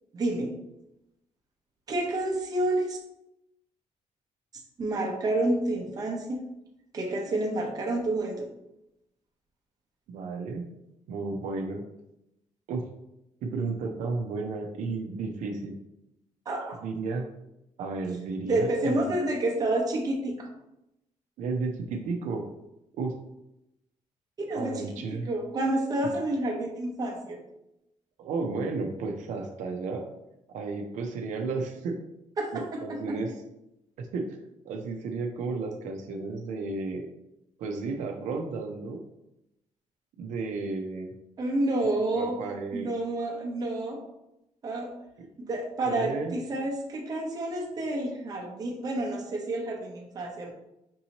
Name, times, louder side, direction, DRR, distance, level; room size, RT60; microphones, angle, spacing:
voice 1, 0.1-0.5 1.9-3.0 4.8-6.4 6.9-8.5 16.5-16.8 18.4-20.5 24.5-27.4 32.4-32.6 33.1-33.2 41.4-42.3 42.7-44.0 44.6-44.9 45.4-50.5, right 2 dB, 30° right, 0 dB, 0.7 m, -29 dB
voice 2, 10.1-10.7 11.1-11.8 12.7-12.8 13.4-15.8 16.8-17.3 17.8-19.1 21.4-22.4 23.0-23.1 24.5-25.3 28.2-30.1 30.5-32.0 32.5-33.3 34.0-34.4 34.6-37.1 37.6-39.0 40.2-41.1 42.2-42.9 45.2-45.3 45.8-46.3, right 3 dB, 85° right, 2 dB, 0.6 m, -33 dB
5.3 x 2.7 x 2.9 m, 0.87 s
cardioid pair, 170°, 12 cm